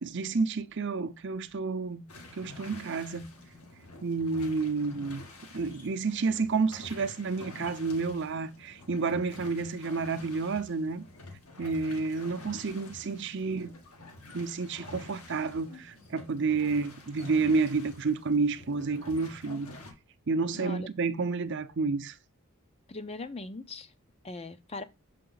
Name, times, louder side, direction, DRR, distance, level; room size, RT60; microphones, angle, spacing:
voice 1, 0.0-2.0 2.3-3.3 4.0-5.2 5.5-11.0 11.6-13.8 14.3-19.7 20.3-22.2, right 4 dB, 55° right, 0.6 m, -30 dB
sound 1, 2.1-19.9, left 2 dB, 85° left, 2.0 m, -48 dB
voice 2, 20.5-20.9 22.9-23.9 24.2-24.8, left 3 dB, 25° left, 0.5 m, -40 dB
6.6 x 5.1 x 3.9 m
head